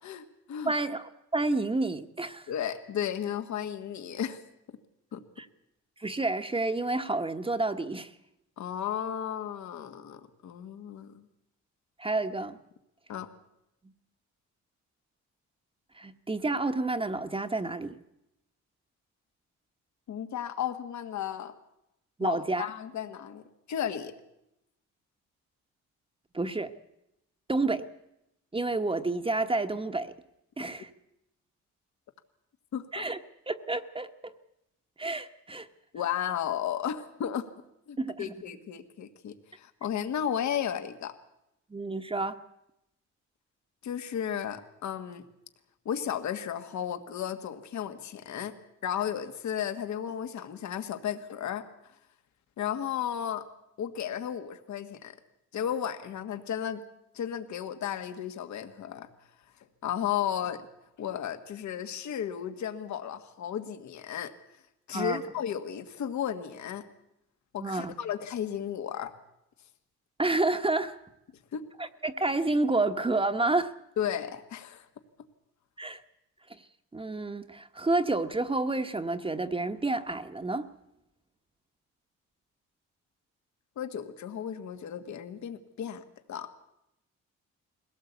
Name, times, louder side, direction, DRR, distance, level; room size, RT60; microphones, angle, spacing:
voice 1, 0.0-0.7 2.5-4.4 5.1-5.2 8.6-11.3 13.1-13.3 20.1-21.5 22.2-24.1 32.7-33.1 35.9-37.5 37.9-41.1 43.8-45.2 45.9-48.5 48.8-51.7 52.6-53.4 53.8-55.2 55.5-56.8 57.1-59.1 59.8-60.6 61.0-64.3 64.9-66.8 67.5-69.1 71.5-71.6 74.0-74.9 83.8-86.5, left 9 dB, 70° left, 10 dB, 1.7 m, -34 dB
voice 2, 0.6-2.5 5.4-5.5 6.0-8.1 12.0-12.6 15.9-18.0 22.2-22.7 26.3-26.7 27.5-27.9 28.5-30.1 30.6-30.9 32.9-33.2 33.5-34.3 35.0-35.7 38.0-38.3 41.7-42.4 64.9-65.2 67.6-67.9 70.2-71.0 71.8-73.7 75.8-76.0 76.5-76.6 76.9-80.7, right 2 dB, 20° right, 8 dB, 1.2 m, -29 dB
21.0 x 17.5 x 8.3 m, 0.86 s
cardioid pair, 90°, 30 cm